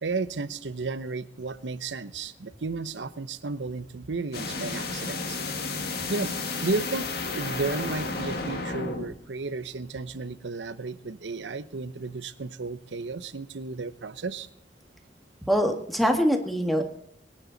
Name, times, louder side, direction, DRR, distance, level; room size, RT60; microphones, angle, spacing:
voice 1, 0.0-5.4 6.1-6.3 6.6-14.5, right 3 dB, 85° right, 13 dB, 0.8 m, -33 dB
sound 1, 4.3-9.1, left 3 dB, 60° left, 1.8 m, -32 dB
voice 2, 15.5-16.8, equal, ahead, 4 dB, 1.7 m, -23 dB
23.0 x 9.9 x 4.0 m, 0.74 s
head